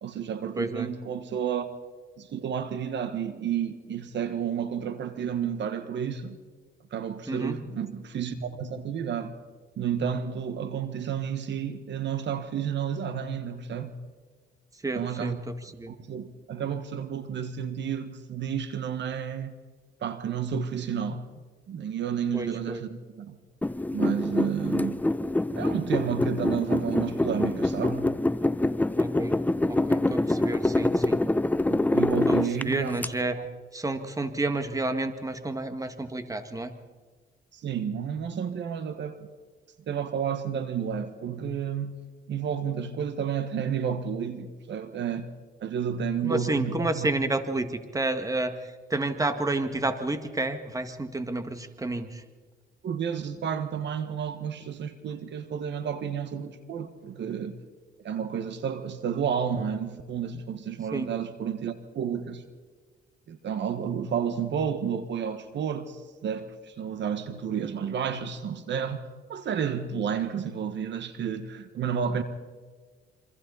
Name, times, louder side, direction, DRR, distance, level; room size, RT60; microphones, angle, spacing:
voice 1, 0.0-1.7 2.2-6.4 6.9-9.3 9.8-14.0 14.9-15.5 15.9-19.5 20.0-21.3 21.7-23.4 23.9-25.0 25.6-28.1 31.7-33.0 33.4-33.5 37.5-39.3 39.9-41.9 42.3-45.3 45.6-47.1 52.8-57.6 58.0-62.4 63.3-69.0 69.3-72.2, right 7 dB, 65° right, 1.5 m, -31 dB
voice 2, 0.6-0.9 7.3-7.6 14.8-15.9 22.3-22.8 29.0-29.4 29.7-31.2 32.3-32.4 32.6-33.4 33.7-36.7 46.2-52.2 60.9-61.1, right 2 dB, 15° right, 1.8 m, -30 dB
sound 1, 23.6-33.1, left 2 dB, 10° left, 0.6 m, -25 dB
27.5 x 25.0 x 4.1 m
cardioid pair, 90°, 20 cm